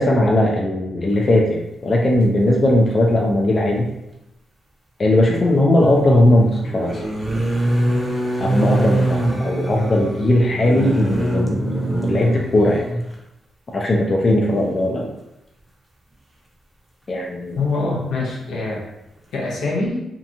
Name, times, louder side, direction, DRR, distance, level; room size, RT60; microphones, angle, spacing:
voice 1, 0.0-3.9 5.0-7.0 8.4-12.9 13.7-15.1 17.1-17.6, left 1 dB, 45° left, -1 dB, 0.4 m, -18 dB
sound 1, 3.2-3.3 5.5-13.1 14.3-14.5 14.8-15.0, right 1 dB, 15° right, 0.6 m, -24 dB
voice 2, 17.5-18.8 19.3-20.1, left 3 dB, 85° left, -4 dB, 0.8 m, -24 dB
2.8 x 2.3 x 2.5 m, 0.90 s
cardioid pair, 75°, 0 cm